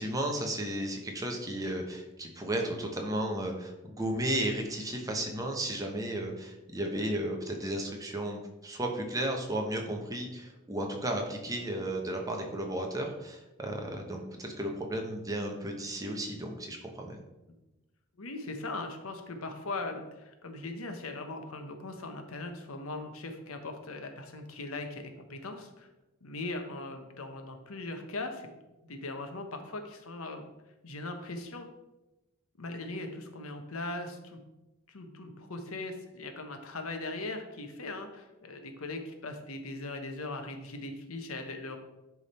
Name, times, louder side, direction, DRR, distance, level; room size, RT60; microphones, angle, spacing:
voice 1, 0.0-17.2, right 1 dB, 15° right, 1 dB, 1.0 m, -34 dB
voice 2, 18.2-25.9 26.2-28.5 28.8-30.4 30.8-31.7 32.6-34.4 34.9-41.8, left 2 dB, 90° left, 5 dB, 1.1 m, -39 dB
10.5 x 3.7 x 4.3 m, 1.0 s
head